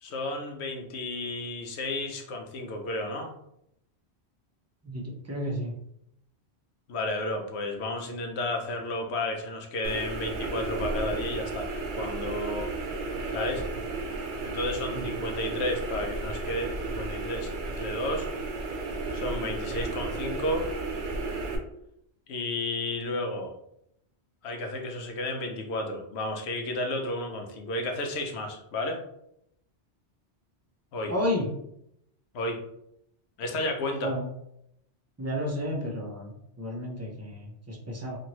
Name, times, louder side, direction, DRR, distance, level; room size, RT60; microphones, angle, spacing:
voice 1, 0.0-3.3 6.9-12.7 13.3-13.6 14.4-18.3 19.1-20.6 22.3-23.5 24.4-29.0 30.9-31.1 32.3-32.6 33.4-34.1, left 2 dB, 75° left, 3 dB, 0.9 m, -32 dB
voice 2, 4.8-5.7 14.9-15.1 31.1-31.5 34.0-34.3 35.2-38.2, left 1 dB, 20° right, -1 dB, 0.4 m, -32 dB
sound 1, 9.8-21.6, right 3 dB, 80° right, 0.9 m, -33 dB
2.9 x 2.6 x 2.9 m, 0.76 s
omnidirectional pair, 1.1 m